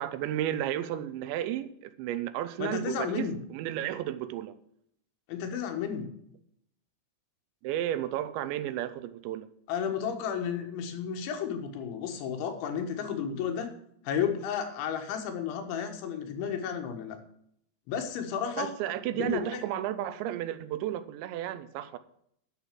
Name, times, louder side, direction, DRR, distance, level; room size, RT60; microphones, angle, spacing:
voice 1, 0.0-4.5 7.6-9.5 18.6-22.0, right 12 dB, 85° right, 13 dB, 3.0 m, -33 dB
voice 2, 2.6-3.4 5.3-6.1 9.7-13.7 14.0-17.2 17.9-18.7 19.1-19.6, left 7 dB, 85° left, 5 dB, 3.9 m, -32 dB
10.5 x 7.1 x 7.4 m, 0.70 s
omnidirectional pair, 5.2 m